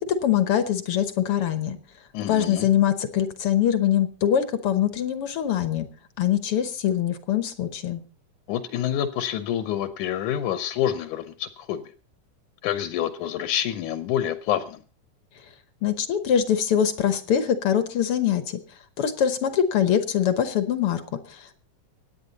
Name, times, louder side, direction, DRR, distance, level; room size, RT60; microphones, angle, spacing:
voice 1, 0.2-1.8 2.3-5.9 6.2-8.0 15.8-18.6 19.0-21.5, left 9 dB, 60° left, 10 dB, 1.6 m, -23 dB
voice 2, 2.1-2.7 8.5-11.8 12.6-14.8, left 10 dB, 80° left, 10 dB, 2.4 m, -27 dB
24.5 x 9.5 x 4.1 m, 0.36 s
omnidirectional pair, 3.5 m